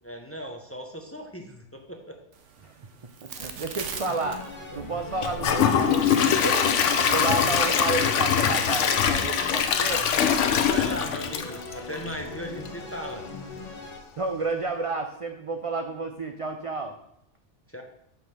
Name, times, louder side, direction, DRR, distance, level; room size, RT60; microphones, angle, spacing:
voice 1, 0.0-2.2 10.7-13.3 17.7-17.8, equal, 15° left, 3 dB, 0.6 m, -37 dB
sound 1, 2.3-8.2, right 6 dB, 85° right, 1.1 m, -41 dB
voice 2, 3.0-10.1 14.2-17.0, right 3 dB, 50° right, 5 dB, 0.4 m, -31 dB
sound 2, 3.9-14.0, left 3 dB, 35° left, 1.0 m, -40 dB
Gurgling / Toilet flush / Trickle dribble, 5.2-12.2 12.6-12.7 13.2-13.3, left 8 dB, 85° left, 1.0 m, -23 dB
5.3 x 4.8 x 6.2 m, 0.76 s
omnidirectional pair, 1.2 m